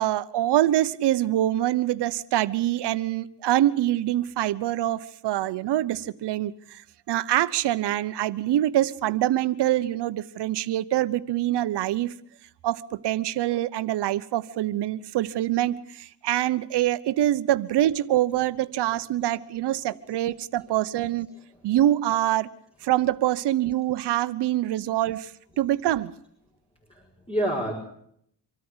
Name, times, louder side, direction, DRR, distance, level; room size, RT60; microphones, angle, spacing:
voice 1, 0.0-6.5 7.1-12.1 12.6-21.3 21.6-22.5 22.8-25.3 25.6-26.1, right 13 dB, 85° right, 1.0 m, -25 dB
voice 2, 21.3-21.7 26.9-27.7, right 1 dB, 15° left, 5.7 m, -30 dB
25.5 x 13.5 x 8.1 m
cardioid pair, 80°, 40 cm